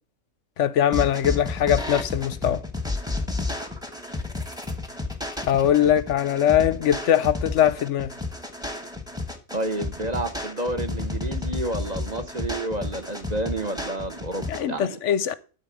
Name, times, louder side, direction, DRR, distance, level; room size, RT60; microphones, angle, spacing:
voice 1, 0.6-2.6 5.5-8.1 14.5-15.3, left 10 dB, 65° left, 0.9 m, -21 dB
sound 1, 0.9-14.6, left 3 dB, 5° right, 1.2 m, -31 dB
voice 2, 9.5-15.0, right 1 dB, 30° right, 1.0 m, -30 dB
12.5 x 4.2 x 7.4 m
omnidirectional pair, 1.5 m